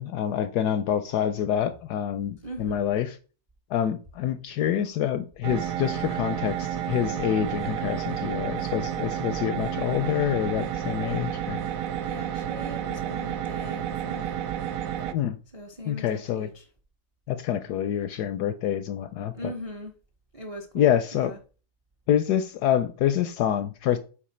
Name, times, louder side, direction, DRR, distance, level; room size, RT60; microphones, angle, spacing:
voice 1, 0.0-3.1 3.7-11.6 15.1-15.4 15.9-16.5 17.3-19.3 20.7-21.3 22.1-24.0, left 10 dB, 75° left, 1.0 m, -26 dB
voice 2, 2.4-2.9 12.0-14.5 15.5-16.7 19.3-19.9 20.3-21.4, equal, 40° right, 0.4 m, -40 dB
sound 1, 5.4-15.1, right 10 dB, 70° right, 0.8 m, -31 dB
7.3 x 4.4 x 4.3 m
omnidirectional pair, 2.1 m